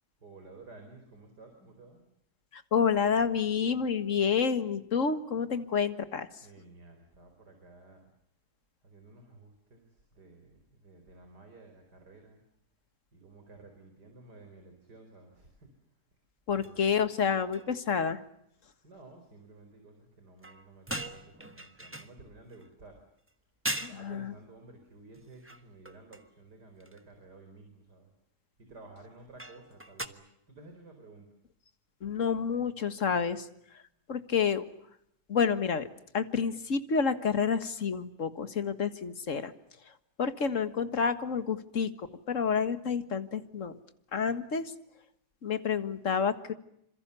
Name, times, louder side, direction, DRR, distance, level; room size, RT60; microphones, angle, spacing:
voice 1, 0.2-2.0 6.4-8.1 8.8-12.4 13.1-15.7 16.5-17.0 18.8-23.0 23.9-28.1 28.6-31.3, right 3 dB, 90° right, 5 dB, 5.1 m, -53 dB
voice 2, 2.5-6.3 16.5-18.2 23.8-24.3 32.0-33.5 34.1-34.6 35.3-35.9 36.1-39.5 40.2-41.9 42.3-43.8 44.1-44.7 45.4-46.5, left 6 dB, 50° left, 11 dB, 1.9 m, -29 dB
sound 1, 16.6-16.8 17.1-17.3 17.5-17.9 20.4-22.7 23.3-23.4 23.6-24.0 25.1-26.3 26.8-27.0 29.4-30.1, right 1 dB, 10° right, 1.3 m, -40 dB
28.0 x 27.0 x 7.0 m, 0.75 s
omnidirectional pair, 1.7 m